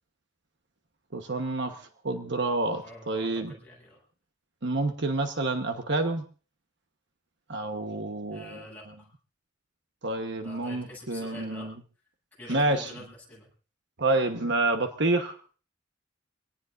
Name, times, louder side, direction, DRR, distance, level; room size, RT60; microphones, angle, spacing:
voice 1, 1.1-3.5 4.6-6.3 7.5-8.6 10.0-11.7 12.5-12.9 14.0-15.4, right 2 dB, 60° right, 6 dB, 1.2 m, -28 dB
voice 2, 2.8-4.0 8.3-9.1 10.4-11.7 12.4-13.5, left 1 dB, 10° left, -5 dB, 7.7 m, -46 dB
25.5 x 18.0 x 2.6 m, 0.39 s
head